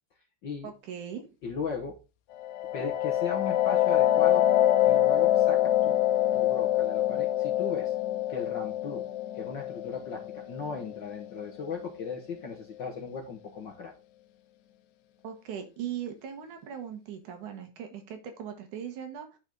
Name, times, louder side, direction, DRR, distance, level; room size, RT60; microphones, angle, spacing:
voice 1, 0.6-1.2 15.2-19.4, right 9 dB, 85° right, 6 dB, 2.9 m, -39 dB
voice 2, 1.4-2.0 2.7-4.4 4.8-6.0 6.3-7.9 8.3-9.0 9.3-13.9, left 5 dB, 55° left, 0 dB, 1.3 m, -37 dB
sound 1, 2.4-11.9, left 12 dB, 85° left, 2.1 m, -25 dB
10.5 x 5.3 x 3.8 m, 0.29 s
omnidirectional pair, 3.4 m